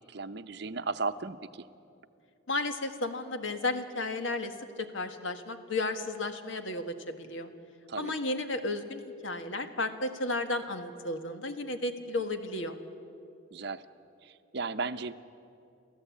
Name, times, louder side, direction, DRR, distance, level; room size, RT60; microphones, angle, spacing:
voice 1, 0.1-1.6 7.9-8.1 13.5-13.8 14.2-15.1, right 4 dB, 55° right, 11 dB, 0.7 m, -35 dB
voice 2, 2.5-7.5 8.0-12.7, left 2 dB, 75° left, 7 dB, 1.6 m, -33 dB
29.5 x 14.5 x 8.4 m, 2.6 s
head